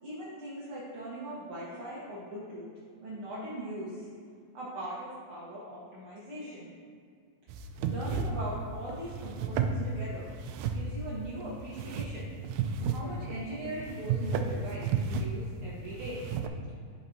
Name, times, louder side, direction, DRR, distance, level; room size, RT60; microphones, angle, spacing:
voice 1, 0.0-2.7 3.0-4.1 4.5-6.7 7.8-10.3 10.7-12.3 12.8-16.2, right 1 dB, 70° right, -8 dB, 1.2 m, -40 dB
sound 1, 7.5-16.5, right 5 dB, 85° right, 1.7 m, -33 dB
13.0 x 5.2 x 2.7 m, 2.1 s
omnidirectional pair, 4.1 m